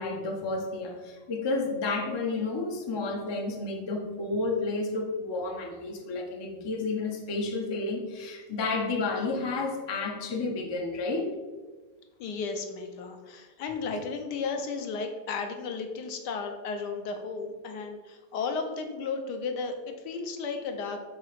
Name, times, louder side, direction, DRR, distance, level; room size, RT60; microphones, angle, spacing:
voice 1, 0.0-11.3, left 3 dB, 35° left, 2 dB, 0.4 m, -31 dB
voice 2, 12.2-21.0, left 4 dB, 85° left, 5 dB, 1.4 m, -34 dB
7.4 x 2.8 x 5.0 m, 1.3 s
omnidirectional pair, 1.8 m